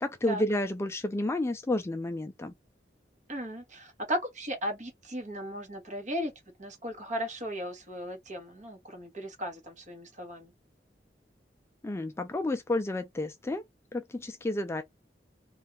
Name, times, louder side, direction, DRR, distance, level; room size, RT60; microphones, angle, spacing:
voice 1, 0.0-2.5 11.8-13.6 13.9-14.8, left 1 dB, 15° left, 0.3 m, -31 dB
voice 2, 3.3-6.3 6.6-10.5, equal, 45° right, 1.3 m, -36 dB
2.7 x 2.4 x 3.3 m
head